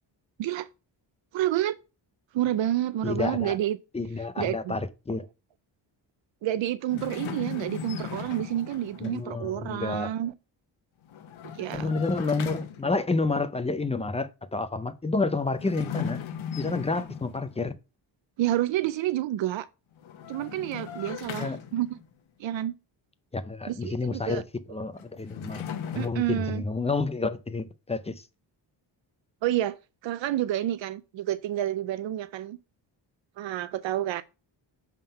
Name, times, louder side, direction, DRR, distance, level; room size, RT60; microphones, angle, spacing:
voice 1, 1.3-1.8 2.3-3.8 4.4-4.7 6.4-10.3 11.5-11.9 18.4-19.7 20.3-22.0 22.4-22.7 23.7-24.4 25.9-26.6 29.4-29.8 30.0-32.6 33.4-34.2, right 13 dB, 75° right, 0.5 m, -29 dB
voice 2, 3.0-3.6 3.9-5.2 9.0-10.1 11.7-16.2 16.6-17.7 21.3-21.6 23.3-24.4 24.7-25.6 25.9-28.2, left 3 dB, 15° left, 0.4 m, -29 dB
sound 1, 6.9-9.2 11.0-13.0 15.5-17.6 20.0-22.1 25.0-26.1, left 7 dB, 85° left, 1.1 m, -37 dB
7.2 x 3.7 x 5.5 m
wide cardioid pair, 155°, 46 cm